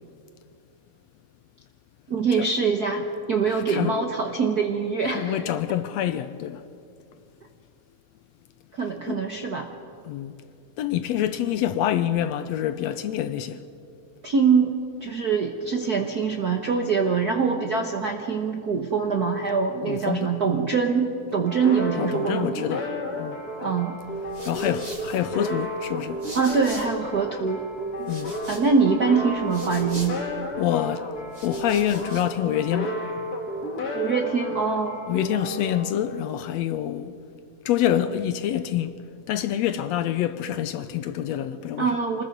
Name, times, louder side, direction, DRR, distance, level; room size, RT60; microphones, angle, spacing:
voice 1, 2.1-5.4 8.7-9.7 14.2-14.7 15.0-22.5 23.6-24.0 26.3-27.6 28.5-30.2 33.9-35.0 41.8-42.2, right 5 dB, 60° right, 1.0 m, -24 dB
voice 2, 3.5-4.0 5.1-6.6 9.1-9.2 10.0-10.3 10.8-13.6 19.8-20.3 22.0-22.8 23.1-23.4 24.4-26.2 28.0-28.3 30.6-31.1 31.4-33.0 35.1-37.1 37.6-39.0 39.3-41.9, left 11 dB, 75° left, 1.7 m, -26 dB
sound 1, 21.3-36.7, left 1 dB, 35° left, 1.9 m, -33 dB
sound 2, 24.0-27.1 27.5-30.6 31.1-32.4, equal, 15° right, 3.7 m, -44 dB
26.5 x 20.0 x 5.3 m
omnidirectional pair, 3.3 m